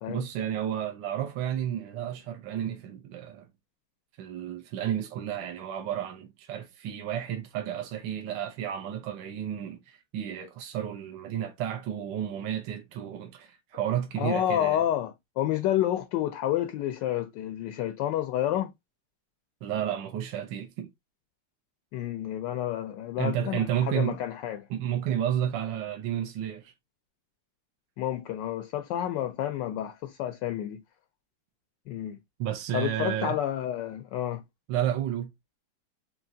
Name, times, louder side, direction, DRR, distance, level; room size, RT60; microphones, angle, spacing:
voice 1, 0.1-3.5 4.2-14.8 19.6-20.9 23.2-24.2 24.7-26.7 32.4-33.4 34.7-35.3, right 10 dB, 70° right, 1.2 m, -31 dB
voice 2, 14.2-18.7 21.9-24.7 28.0-30.8 31.9-32.2 32.7-34.4, left 11 dB, 80° left, 1.0 m, -29 dB
4.7 x 2.7 x 2.6 m
omnidirectional pair, 2.4 m